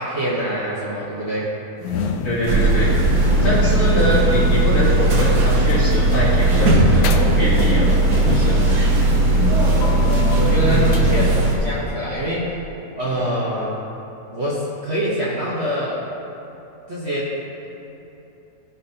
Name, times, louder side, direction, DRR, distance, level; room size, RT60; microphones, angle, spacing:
voice 1, 0.0-1.5 3.8-4.1 9.1-9.5 10.4-12.5 12.9-13.8 14.3-16.0 16.9-17.3, right 1 dB, 40° right, -6 dB, 1.2 m, -25 dB
sound 1, 1.8-12.0, left 5 dB, 75° left, 1.1 m, -30 dB
voice 2, 2.2-2.9 3.4-7.9 8.2-8.6 10.7-11.0 13.0-13.3, equal, 55° left, -8 dB, 2.7 m, -23 dB
sound 2, 2.5-11.6, right 2 dB, 65° right, 1.6 m, -17 dB
15.5 x 5.1 x 2.8 m, 2.9 s
omnidirectional pair, 1.9 m